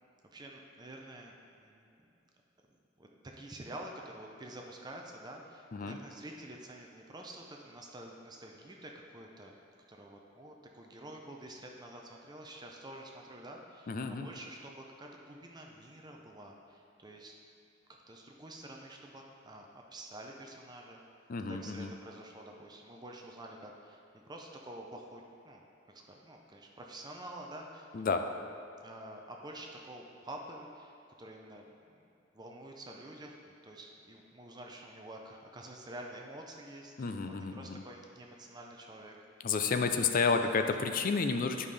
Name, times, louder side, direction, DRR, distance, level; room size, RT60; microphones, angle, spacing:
voice 1, 0.3-2.0 3.0-3.1 3.4-9.6 9.9-17.3 18.1-21.0 21.4-28.3 28.8-39.2 39.9-40.0 40.4-40.5, right 1 dB, 20° right, 1 dB, 0.6 m, -48 dB
voice 2, 13.9-14.3 21.3-21.9 27.9-28.2 37.0-37.8 39.4-41.7, left 4 dB, 45° left, 6 dB, 0.4 m, -31 dB
9.8 x 5.4 x 3.3 m, 2.6 s
head